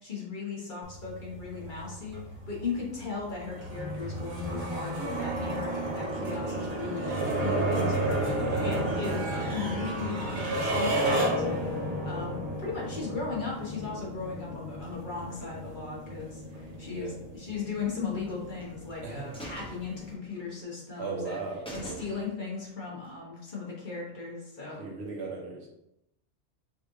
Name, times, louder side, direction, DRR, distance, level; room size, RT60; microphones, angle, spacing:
voice 1, 0.0-2.2 2.5-8.3 8.6-11.6 12.0-21.4 21.7-24.8, left 5 dB, 45° left, -4 dB, 1.3 m, -37 dB
sound 1, 0.8-20.1, right 1 dB, 90° right, 1.6 m, -32 dB
voice 2, 8.2-9.2 16.8-17.1 19.0-19.5 21.0-22.0 24.8-25.7, right 4 dB, 70° right, -2 dB, 1.3 m, -37 dB
sound 2, 18.3-18.9 19.3-20.6 20.9-21.0 21.3-21.4 21.7-22.6 22.9-23.0, right 1 dB, 5° left, 0.7 m, -44 dB
5.2 x 3.2 x 2.7 m, 0.82 s
omnidirectional pair, 1.1 m